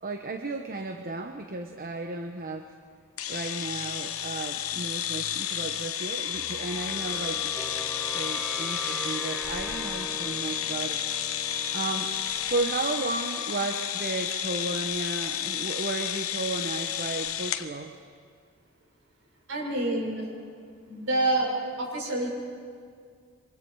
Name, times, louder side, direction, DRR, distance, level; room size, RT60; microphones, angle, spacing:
voice 1, 0.0-2.7 3.3-7.5 8.0-11.0 11.7-17.9, right 2 dB, 45° right, 5 dB, 1.0 m, -34 dB
sound 1, 3.2-17.7, left 10 dB, 75° left, 1.1 m, -31 dB
sound 2, 6.3-13.2, right 1 dB, 5° left, 5.4 m, -41 dB
voice 2, 19.5-20.3 20.9-21.5 21.8-22.3, right 2 dB, 65° right, -1 dB, 6.1 m, -27 dB
28.0 x 25.0 x 4.8 m, 2.1 s
head